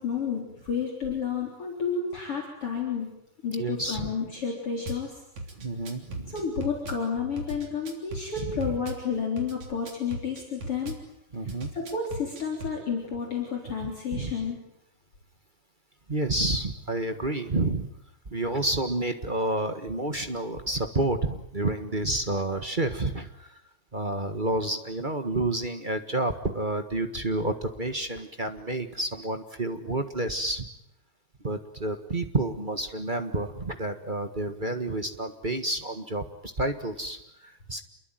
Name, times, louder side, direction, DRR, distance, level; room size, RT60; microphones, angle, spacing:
voice 1, 0.0-5.2 6.3-11.0 11.4-14.7, left 6 dB, 45° left, 0 dB, 4.7 m, -31 dB
voice 2, 3.6-4.1 5.6-6.4 8.4-8.8 11.3-11.7 13.8-14.3 16.1-17.9 18.3-23.6 23.9-30.7 31.4-37.8, right 2 dB, 30° right, 7 dB, 1.0 m, -30 dB
Drum kit / Bass drum, 4.9-5.0 5.4-7.0 7.4-9.0 9.4-11.0 11.5-12.8, right 2 dB, 70° right, 4.7 m, -38 dB
28.5 x 22.5 x 9.2 m, 0.80 s
omnidirectional pair, 3.4 m